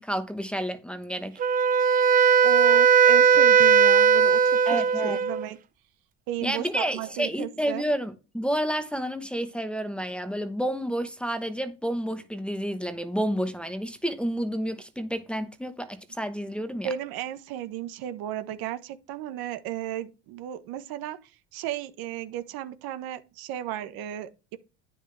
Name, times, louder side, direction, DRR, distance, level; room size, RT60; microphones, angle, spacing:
voice 1, 0.0-1.4 4.7-5.2 6.4-16.9, equal, 5° left, 1.0 m, -30 dB
Wind instrument woodwind instrument, 1.4-5.5, right 6 dB, 25° right, 0.4 m, -18 dB
voice 2, 2.4-5.6 6.3-7.9 16.8-21.2 21.5-24.6, right 11 dB, 70° right, 1.3 m, -34 dB
9.5 x 6.8 x 3.3 m
cardioid pair, 120°, 37 cm